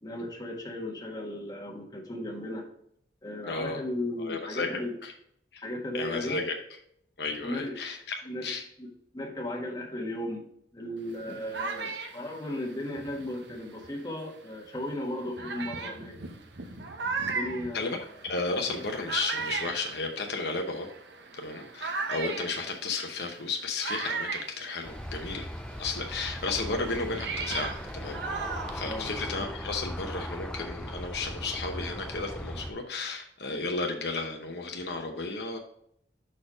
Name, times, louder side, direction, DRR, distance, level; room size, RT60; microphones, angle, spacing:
voice 1, 0.0-2.7 3.2-4.9 5.6-6.4 7.4-7.8 8.2-8.5 8.8-10.5 10.7-16.1 17.3-18.1 28.8-29.1, left 1 dB, 20° left, 0 dB, 1.4 m, -36 dB
voice 2, 3.5-3.8 4.2-5.1 5.5-5.6 5.9-6.6 7.2-8.2 8.4-8.6 17.7-18.0 18.2-20.9 21.3-25.5 25.8-28.2 28.7-35.6, left 3 dB, 70° left, 3 dB, 0.9 m, -33 dB
sound 1, 11.1-14.1 14.8-14.9 15.4-25.4 25.7-29.4, right 4 dB, 85° right, 0.8 m, -37 dB
Aircraft, 24.8-32.7, equal, 5° left, 0.4 m, -38 dB
6.4 x 4.3 x 4.9 m, 0.70 s
head